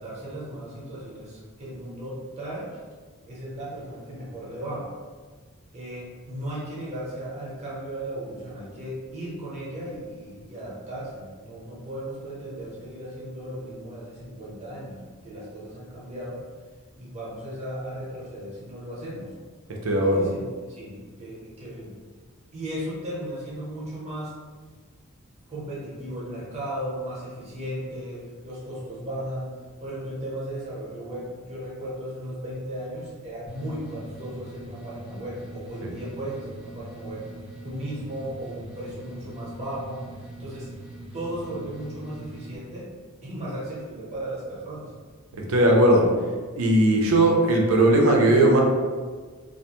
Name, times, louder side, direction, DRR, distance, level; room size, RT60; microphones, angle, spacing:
voice 1, 0.0-2.8 3.3-4.9 5.7-16.4 17.0-19.3 20.0-21.9 22.5-24.4 25.5-37.3 37.6-40.0 40.4-40.7 41.1-42.9 43.2-44.9, right 1 dB, 30° right, -7 dB, 0.8 m, -36 dB
voice 2, 19.8-20.3 45.4-46.1 46.6-48.6, right 1 dB, 75° right, 0 dB, 0.5 m, -18 dB
sound 1, 33.5-42.6, right 1 dB, 5° right, 0.4 m, -42 dB
2.4 x 2.1 x 2.9 m, 1.5 s
head